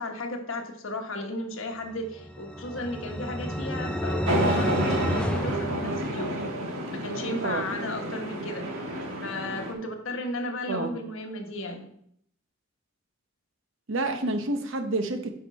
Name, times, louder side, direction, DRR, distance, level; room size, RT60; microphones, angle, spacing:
voice 1, 0.0-6.4 6.9-8.9 9.2-11.9, left 1 dB, 70° left, 4 dB, 1.2 m, -35 dB
sound 1, 2.1-6.6, equal, 5° left, 0.4 m, -31 dB
sound 2, 4.3-9.7, right 1 dB, 85° right, 1.4 m, -30 dB
voice 2, 13.9-15.3, right 2 dB, 65° right, 7 dB, 0.9 m, -28 dB
8.8 x 5.2 x 4.1 m, 0.69 s
head